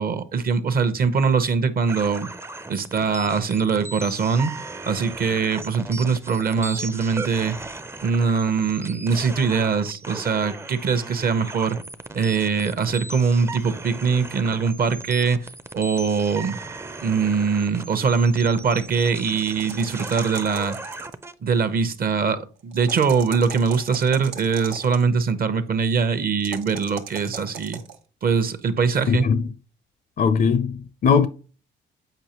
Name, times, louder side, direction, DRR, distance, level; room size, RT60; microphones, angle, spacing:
voice 1, 0.0-2.3 2.7-4.5 4.9-7.6 8.0-11.8 12.1-15.4 15.7-16.6 17.0-20.8 21.4-27.8 28.2-29.3, right 5 dB, 50° right, 0.8 m, -22 dB
sound 1, 1.9-21.3, right 2 dB, 15° right, 0.5 m, -37 dB
sound 2, 19.4-21.3 22.7-25.0 26.4-28.0, right 7 dB, 90° right, 1.1 m, -38 dB
voice 2, 29.1-29.5 30.2-31.3, left 6 dB, 45° left, 0.5 m, -20 dB
7.9 x 4.8 x 2.9 m
cardioid pair, 90°, 20 cm